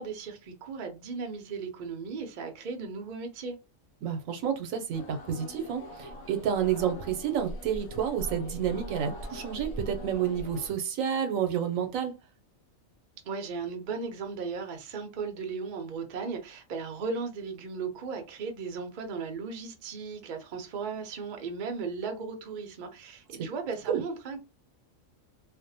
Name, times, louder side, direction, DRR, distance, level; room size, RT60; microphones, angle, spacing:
voice 1, 0.0-3.6 13.3-24.4, right 5 dB, 55° right, 0.5 m, -36 dB
voice 2, 4.0-12.2 23.9-24.0, right 8 dB, 80° right, 1.0 m, -30 dB
sound 1, 4.9-10.7, equal, 90° left, 1.0 m, -41 dB
2.6 x 2.0 x 2.6 m
omnidirectional pair, 1.4 m